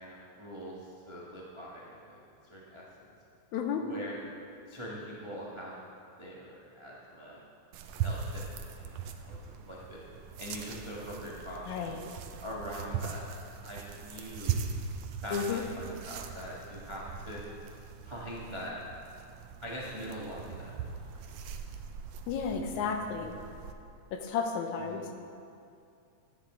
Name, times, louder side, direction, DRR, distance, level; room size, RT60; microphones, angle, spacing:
voice 1, 0.0-2.2 2.5-3.1 3.8-4.2 4.7-5.8 6.2-7.4 8.0-10.0 10.4-12.0 12.4-13.2 13.6-14.6 15.2-17.4 18.0-18.7 19.6-21.3 24.9-25.0, equal, 40° right, -5 dB, 0.4 m, -43 dB
voice 2, 3.5-3.9 11.7-12.1 15.3-15.6 22.3-23.4 24.1-25.0, left 6 dB, 85° left, 4 dB, 2.2 m, -32 dB
sound 1, 7.7-23.7, right 6 dB, 75° right, 1.6 m, -40 dB
13.0 x 9.5 x 3.8 m, 2.5 s
omnidirectional pair, 3.4 m